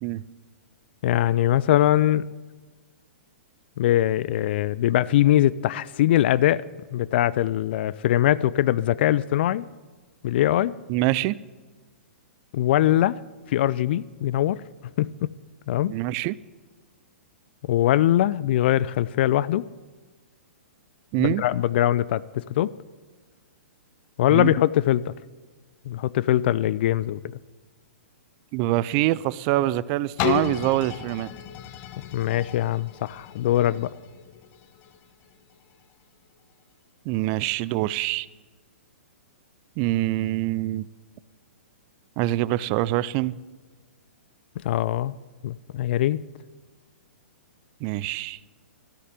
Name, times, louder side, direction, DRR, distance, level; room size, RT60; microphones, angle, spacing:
voice 1, 1.0-2.3 3.8-6.6 6.9-9.7 10.2-10.8 12.5-13.2 13.5-14.6 15.0-15.3 15.7-16.0 17.6-19.7 21.2-22.7 24.2-25.1 25.9-27.2 32.1-33.9 44.6-45.1 45.4-46.2, left 13 dB, 55° left, 19 dB, 0.3 m, -22 dB
voice 2, 10.9-11.4 15.9-16.4 21.1-21.4 24.3-24.6 28.5-31.3 37.1-38.3 39.8-40.9 42.2-43.4 47.8-48.4, right 16 dB, 35° right, 20 dB, 0.4 m, -25 dB
sound 1, 30.2-35.9 36.5-36.6, left 11 dB, 35° left, 0.9 m, -33 dB
13.0 x 6.6 x 9.1 m, 1.4 s
hypercardioid pair, 120°, 7 cm